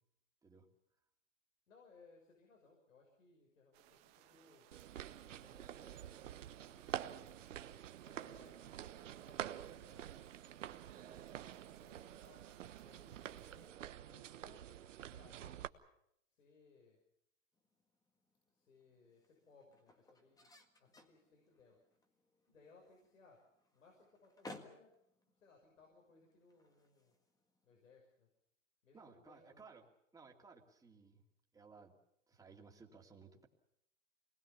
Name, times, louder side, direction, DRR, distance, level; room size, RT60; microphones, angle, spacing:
voice 1, 1.7-4.7 5.4-7.4 8.0-8.7 9.2-10.1 10.8-14.6 15.1-15.7 16.3-17.0 18.5-21.8 22.5-23.4 23.7-24.9 25.4-27.1 27.6-28.3 28.8-29.9, left 4 dB, 85° left, 0 dB, 6.3 m, -66 dB
sound 1, 3.7-13.7, right 15 dB, 40° right, 1.6 m, -65 dB
sound 2, 4.7-15.7, right 11 dB, 75° right, 1.2 m, -48 dB
sound 3, 17.5-27.9, left 2 dB, 10° left, 1.8 m, -61 dB
voice 2, 28.9-29.9 30.1-31.2 31.5-32.0 32.3-33.5, right 4 dB, 10° right, 1 dB, 2.7 m, -59 dB
26.0 x 20.5 x 7.1 m, 0.76 s
hypercardioid pair, 125°, 38 cm